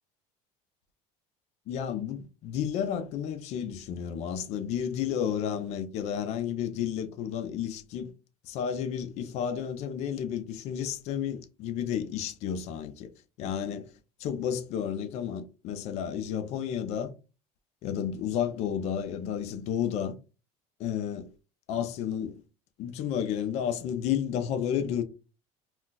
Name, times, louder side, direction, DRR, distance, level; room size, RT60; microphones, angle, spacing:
voice 1, 1.7-8.1 8.5-13.1 13.4-13.9 14.2-17.1 17.8-20.2 20.8-21.3 21.7-22.4 22.8-25.0, left 9 dB, 50° left, 0.4 m, -31 dB
2.3 x 2.2 x 3.8 m
cardioid pair, 160°, 15 cm